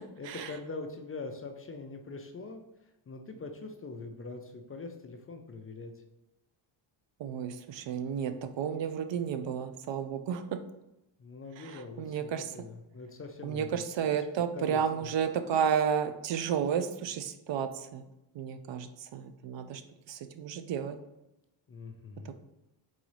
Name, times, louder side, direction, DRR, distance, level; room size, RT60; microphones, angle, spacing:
voice 1, 0.2-2.6 3.1-5.9 11.2-13.8 14.5-15.1 21.7-22.3, left 3 dB, 30° left, 5 dB, 0.4 m, -43 dB
voice 2, 7.2-10.4 11.6-12.5 13.4-18.0 18.3-19.8 20.1-21.0 22.2-22.3, right 8 dB, 65° right, 9 dB, 0.5 m, -32 dB
4.0 x 3.8 x 3.1 m, 0.93 s
cardioid pair, 110°, 49 cm